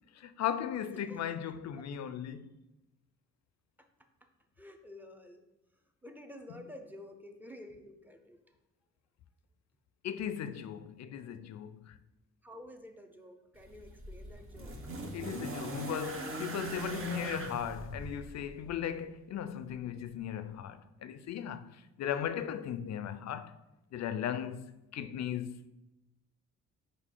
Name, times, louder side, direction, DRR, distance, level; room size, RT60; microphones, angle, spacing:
voice 1, 0.2-2.5 10.0-12.0 15.1-23.5 23.9-25.6, left 9 dB, 55° left, 0.4 m, -37 dB
voice 2, 0.9-1.5 3.8-3.9 4.6-5.4 6.0-8.6 12.4-14.8, left 1 dB, 5° right, 0.5 m, -51 dB
sound 1, 13.5-18.8 19.8-19.9, right 2 dB, 40° right, 1.0 m, -41 dB
6.4 x 5.2 x 3.7 m
wide cardioid pair, 145°, 32 cm